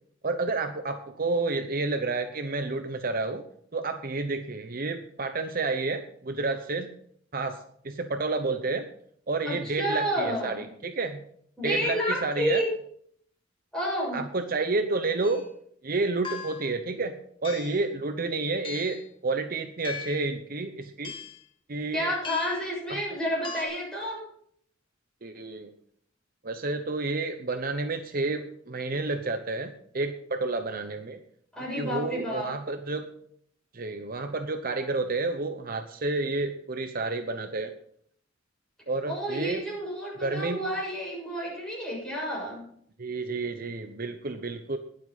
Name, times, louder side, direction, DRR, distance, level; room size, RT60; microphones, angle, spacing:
voice 1, 0.2-3.4 3.7-6.9 7.3-7.6 7.8-8.9 9.3-11.2 11.6-12.6 14.1-15.4 15.8-17.1 17.4-21.1 21.7-22.1 22.9-23.0 25.2-25.7 26.4-31.2 31.7-33.1 33.7-37.7 38.9-39.6 40.2-40.6 43.0-44.8, right 3 dB, 45° right, 7 dB, 0.8 m, -30 dB
voice 2, 9.4-10.6 11.6-12.7 13.7-14.2 21.9-24.2 31.5-32.5 39.0-42.6, equal, 5° left, -4 dB, 7.0 m, -30 dB
sound 1, 15.2-15.5 16.2-16.8 17.4-17.9 18.6-19.1 19.8-20.3 21.0-21.4 22.2-22.7 23.4-23.6, left 5 dB, 25° left, 1.9 m, -39 dB
20.0 x 7.7 x 4.1 m, 0.64 s
head